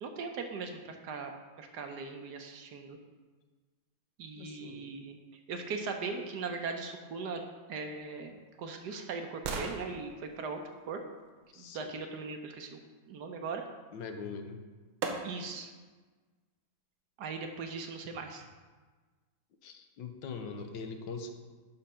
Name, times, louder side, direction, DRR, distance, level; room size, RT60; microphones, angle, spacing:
voice 1, 0.0-1.3 1.6-3.0 4.2-5.2 5.5-7.4 7.7-10.6 10.9-11.0 11.6-12.8 13.1-13.6 15.2-15.7 17.2-18.5, right 4 dB, 65° right, 4 dB, 1.2 m, -39 dB
voice 2, 4.4-4.9 11.5-11.9 13.9-14.6 19.6-21.3, left 4 dB, 70° left, 6 dB, 1.4 m, -42 dB
sound 1, 8.0-12.0 14.1-14.2 15.0-15.7 16.2-16.3, right 4 dB, 85° right, 1.7 m, -42 dB
11.0 x 3.9 x 5.6 m, 1.4 s
omnidirectional pair, 2.2 m